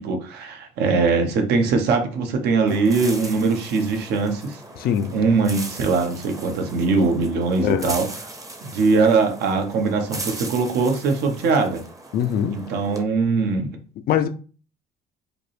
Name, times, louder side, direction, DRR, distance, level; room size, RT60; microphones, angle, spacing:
voice 1, 0.0-4.6 5.1-8.0 8.6-11.8 12.5-13.7, right 4 dB, 75° right, 0.9 m, -21 dB
sound 1, 2.7-13.0, right 2 dB, 20° right, 0.7 m, -38 dB
voice 2, 4.8-5.2 7.6-7.9 12.1-12.7 14.1-14.3, left 9 dB, 65° left, 0.4 m, -22 dB
5.0 x 2.1 x 3.1 m
cardioid pair, 110°, 17 cm